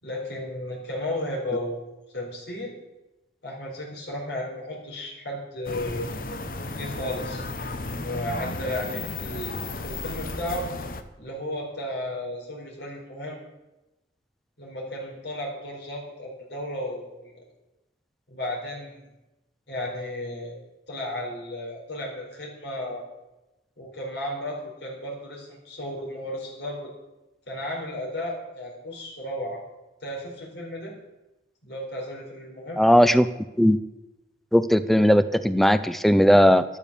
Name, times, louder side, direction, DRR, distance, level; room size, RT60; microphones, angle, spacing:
voice 1, 0.0-1.8 2.1-2.7 3.4-6.1 6.6-7.4 7.9-10.7 11.2-13.4 14.6-17.4 18.3-19.0 19.7-20.5 20.9-23.0 23.8-26.9 27.5-29.6 30.0-30.9 31.6-32.8, left 1 dB, 80° left, -2 dB, 4.4 m, -34 dB
sound 1, 5.6-11.0, left 2 dB, 50° left, 1.0 m, -34 dB
voice 2, 32.8-33.3 33.6-33.8 34.5-36.6, equal, ahead, 13 dB, 0.6 m, -18 dB
12.0 x 12.0 x 6.9 m, 1.0 s
head